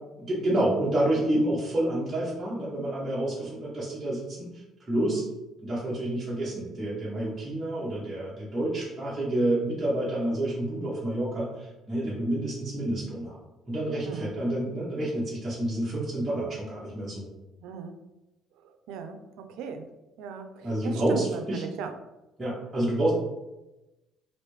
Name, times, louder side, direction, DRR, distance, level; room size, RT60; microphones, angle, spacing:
voice 1, 0.2-5.2 5.6-13.4 13.7-17.3 20.6-21.6 22.4-23.1, right 1 dB, 15° right, -8 dB, 0.7 m, -29 dB
voice 2, 14.1-14.4 17.6-17.9 18.9-19.8 20.2-21.9, right 6 dB, 80° right, 7 dB, 0.4 m, -38 dB
3.2 x 2.5 x 3.1 m, 1.0 s
cardioid pair, 160°, 0 cm